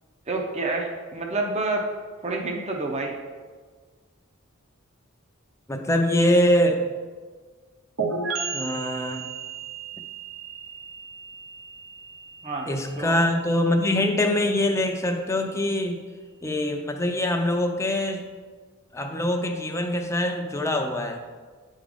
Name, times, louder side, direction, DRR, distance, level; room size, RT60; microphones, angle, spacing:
voice 1, 0.3-1.8 2.2-3.1 12.4-12.7 13.0-13.1, right 2 dB, 30° right, 1 dB, 0.7 m, -28 dB
voice 2, 5.7-6.8 8.5-9.3 12.7-16.0 16.4-18.2 18.9-21.2, left 1 dB, 15° left, 3 dB, 0.5 m, -23 dB
sound 1, 8.0-15.5, right 5 dB, 80° right, 0.9 m, -35 dB
9.6 x 3.7 x 3.5 m, 1.5 s
head